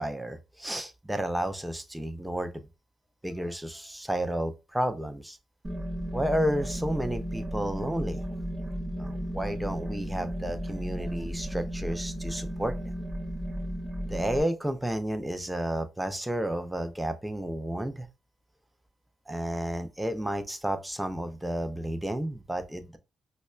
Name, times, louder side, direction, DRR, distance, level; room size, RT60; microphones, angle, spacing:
voice 1, 0.0-2.6 3.2-5.4 6.1-8.3 9.0-12.9 14.1-18.1 19.3-23.0, right 1 dB, 5° right, 0.4 m, -31 dB
sound 1, 5.6-14.4, equal, 20° right, 0.8 m, -34 dB
5.2 x 2.1 x 2.3 m
wide cardioid pair, 150°, 0 cm